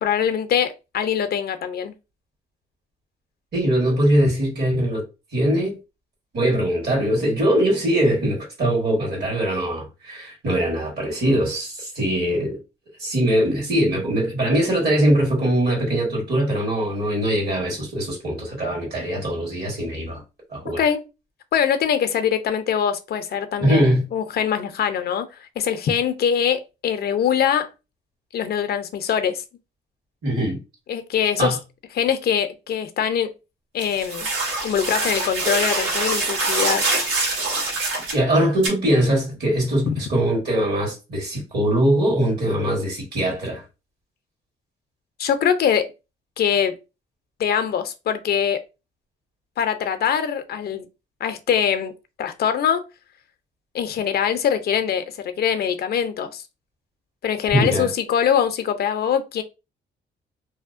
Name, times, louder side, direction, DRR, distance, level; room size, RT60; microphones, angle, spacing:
voice 1, 0.0-1.9 20.6-21.1 21.5-25.3 25.6-27.7 28.3-29.4 30.9-31.6 32.0-33.3 33.7-34.3 34.6-36.8 39.8-39.9 45.2-45.9 46.4-46.8 47.4-48.6 49.6-50.9 51.2-51.9 52.2-52.8 53.7-56.4 57.2-59.4, left 8 dB, 55° left, 0.5 m, -23 dB
voice 2, 3.5-5.0 5.3-5.8 6.3-12.6 13.0-20.2 20.5-20.8 23.6-24.0 30.2-30.6 31.4-31.6 38.1-43.6 57.5-57.9, right 1 dB, 55° right, 1.4 m, -21 dB
sound 1, 33.8-38.2 38.6-38.7, right 3 dB, 80° right, 1.3 m, -24 dB
2.7 x 2.1 x 2.4 m
cardioid pair, 90°, 20 cm